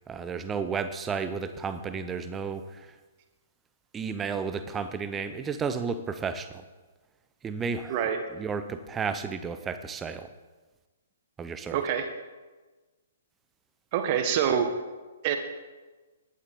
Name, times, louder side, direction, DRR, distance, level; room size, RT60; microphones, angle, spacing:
voice 1, 0.0-2.9 3.9-6.7 7.4-10.3 11.4-11.8, right 5 dB, 15° right, 10 dB, 0.8 m, -33 dB
voice 2, 11.7-12.1 13.9-14.7 15.2-15.4, right 8 dB, 35° right, 6 dB, 1.6 m, -25 dB
18.0 x 11.5 x 3.8 m, 1.3 s
figure-of-eight pair, 120°, 0 cm